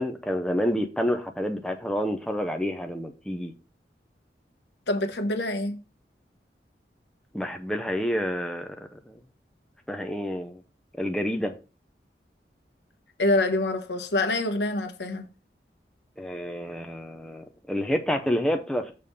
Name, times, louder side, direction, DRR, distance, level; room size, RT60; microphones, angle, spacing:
voice 1, 0.0-3.5 7.3-8.7 9.1-9.2 9.9-10.6 11.0-11.5 16.2-18.9, equal, 5° left, 0.6 m, -28 dB
voice 2, 4.9-5.8 13.2-15.3, left 2 dB, 80° left, 1.0 m, -26 dB
6.7 x 3.6 x 5.4 m
head